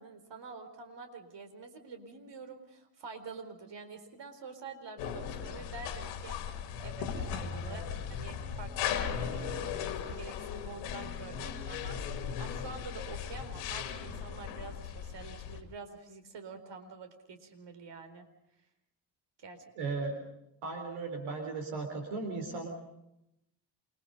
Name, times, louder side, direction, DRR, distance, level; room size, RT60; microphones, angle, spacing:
voice 1, 0.0-6.4 6.8-12.0 12.4-18.2 19.4-19.6, right 4 dB, 55° right, 7 dB, 4.4 m, -47 dB
sound 1, 5.0-15.6, left 8 dB, 85° left, 2.4 m, -37 dB
voice 2, 19.8-20.2 20.6-22.7, right 3 dB, 75° right, 4 dB, 3.9 m, -36 dB
28.5 x 22.5 x 5.4 m, 0.83 s
hypercardioid pair, 45°, 50 cm